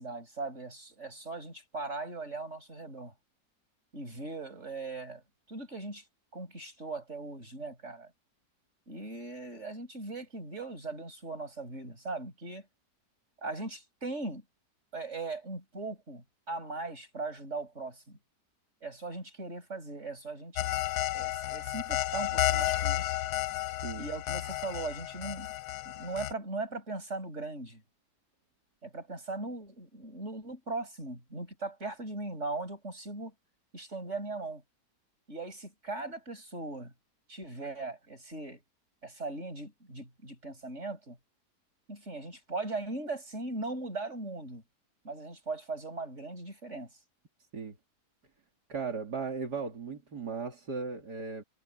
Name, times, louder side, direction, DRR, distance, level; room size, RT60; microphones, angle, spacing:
voice 1, 0.0-3.1 3.9-5.2 5.5-6.0 6.3-8.1 8.9-12.7 13.4-14.4 14.9-18.2 18.8-20.7 21.1-23.1 24.0-25.5 25.9-27.8 28.8-33.3 33.7-34.6 35.3-36.9 37.3-38.6 39.0-41.2 41.9-44.6 45.0-46.9, right 3 dB, 45° right, 7.3 m, -39 dB
sound 1, 20.6-26.3, left 14 dB, 75° left, 1.1 m, -32 dB
voice 2, 48.7-51.4, right 5 dB, 70° right, 3.3 m, -36 dB
omnidirectional pair, 1.8 m